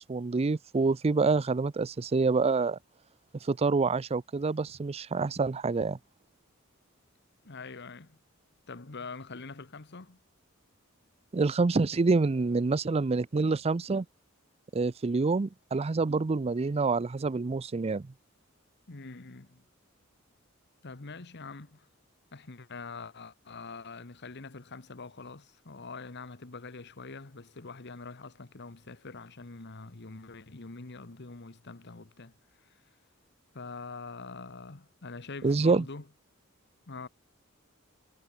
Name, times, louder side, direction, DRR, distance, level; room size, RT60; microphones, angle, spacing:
voice 1, 0.0-2.8 3.4-6.0 11.3-14.0 14.7-18.1 35.4-35.8, right 3 dB, 30° right, 0.4 m, -27 dB
voice 2, 7.4-8.2 8.7-10.2 18.9-19.6 20.8-21.9 22.3-32.3 32.6-32.8 33.5-36.0 36.9-37.1, left 4 dB, 55° left, 1.3 m, -44 dB
head